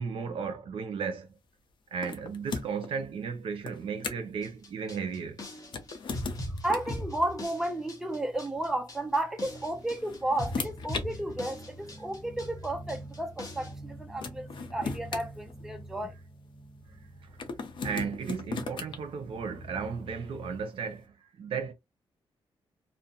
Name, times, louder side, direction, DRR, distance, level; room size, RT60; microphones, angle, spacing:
voice 1, 0.0-1.4 1.9-5.4 17.2-17.4 17.8-21.7, right 6 dB, 75° right, 0.6 m, -35 dB
sound 1, 2.0-2.9 3.6-4.4 5.6-7.0 8.3-8.5 9.6-11.1 12.0-12.1 13.8-13.9 14.2-16.0 17.4-19.0, left 4 dB, 60° left, 0.5 m, -37 dB
sound 2, 4.4-13.8, left 1 dB, 40° left, 0.9 m, -40 dB
voice 2, 6.6-16.2, right 1 dB, 5° right, 0.4 m, -33 dB
sound 3, 9.4-20.6, right 1 dB, 20° left, 1.1 m, -47 dB
2.5 x 2.1 x 2.7 m
wide cardioid pair, 130°, 9 cm